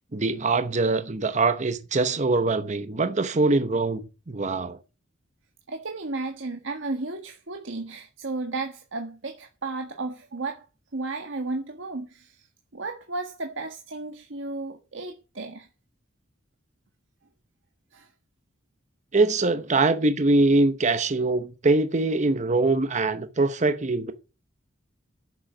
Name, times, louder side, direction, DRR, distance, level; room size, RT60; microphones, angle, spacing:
voice 1, 0.1-4.0 4.3-4.8 19.1-24.1, right 3 dB, 40° right, 0.9 m, -23 dB
voice 2, 5.7-10.6 10.9-12.5 12.7-15.7 17.9-18.1, right 3 dB, 80° right, 1.5 m, -34 dB
11.0 x 7.7 x 6.0 m
head